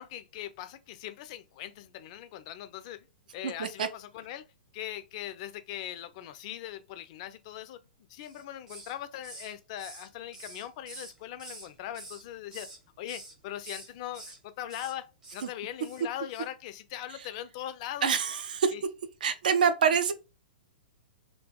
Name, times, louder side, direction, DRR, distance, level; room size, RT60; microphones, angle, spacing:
voice 1, 0.0-3.1 3.3-4.4 4.7-7.8 8.1-12.7 13.0-18.1 18.7-18.8, left 12 dB, 40° left, 0.3 m, -40 dB
voice 2, 3.4-3.9 15.4-15.5 18.0-18.7 19.2-20.1, right 6 dB, 60° right, 0.4 m, -26 dB
Hiss, 8.2-9.0 9.2-11.7 11.9-12.8 13.1-13.3 13.6-14.4 14.7-14.9 15.2-15.5 15.8-16.0 16.3-16.5, right 2 dB, 15° right, 0.6 m, -47 dB
2.6 x 2.2 x 2.2 m
figure-of-eight pair, 110°, 5 cm